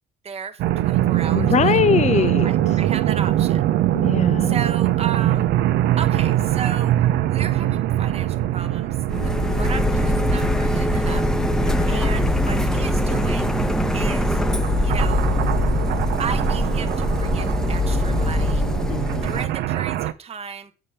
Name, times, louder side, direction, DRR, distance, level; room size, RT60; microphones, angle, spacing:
voice 1, 0.2-1.8 2.1-3.6 4.4-5.6 6.0-6.9 7.3-11.3 11.9-13.5 13.9-14.4 14.8-15.3 16.2-18.6 19.2-20.7, right 6 dB, 35° right, 1.1 m, -34 dB
sound 1, 0.6-20.1, right 13 dB, 80° right, 0.7 m, -23 dB
voice 2, 1.3-2.5 3.9-4.6 11.7-12.1 18.9-19.3, left 8 dB, 45° left, 0.7 m, -22 dB
Printer, 9.1-19.4, left 2 dB, 5° left, 0.8 m, -22 dB
8.5 x 5.2 x 5.7 m
cardioid pair, 110°, 17 cm